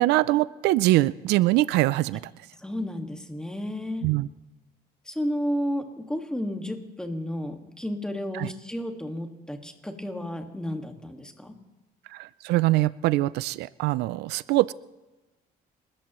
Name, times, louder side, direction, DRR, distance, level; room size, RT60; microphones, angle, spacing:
voice 1, 0.0-2.3 4.0-4.3 8.3-8.5 12.1-14.7, right 17 dB, 85° right, 19 dB, 0.4 m, -23 dB
voice 2, 2.6-4.1 5.0-11.5, equal, 5° left, 4 dB, 1.8 m, -32 dB
29.0 x 14.0 x 3.1 m, 1.1 s
cardioid pair, 110°, 17 cm